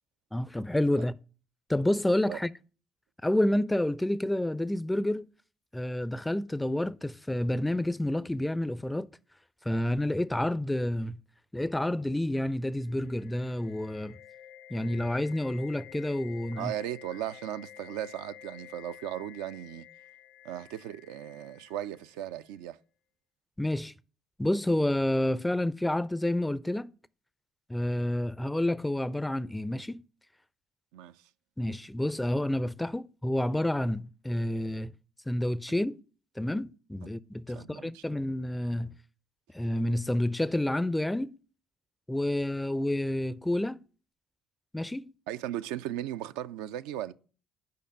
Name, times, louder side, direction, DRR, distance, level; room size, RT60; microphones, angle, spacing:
voice 1, 0.3-1.1 1.7-2.5 3.2-5.3 5.7-9.1 9.7-11.2 11.5-14.2 14.7-16.7 23.6-23.9 24.4-26.9 27.7-30.0 31.6-34.9 35.3-36.0 36.4-38.9 39.5-41.3 42.1-43.8 44.7-45.1, left 1 dB, 10° left, 0.4 m, -29 dB
sound 1, 12.6-22.5, left 12 dB, 75° left, 0.8 m, -51 dB
voice 2, 16.6-19.9 20.4-22.8 30.9-31.2 37.0-37.1 37.5-38.0 45.3-47.1, right 12 dB, 75° right, 0.3 m, -37 dB
6.6 x 5.1 x 6.6 m
hypercardioid pair, 55°, 0 cm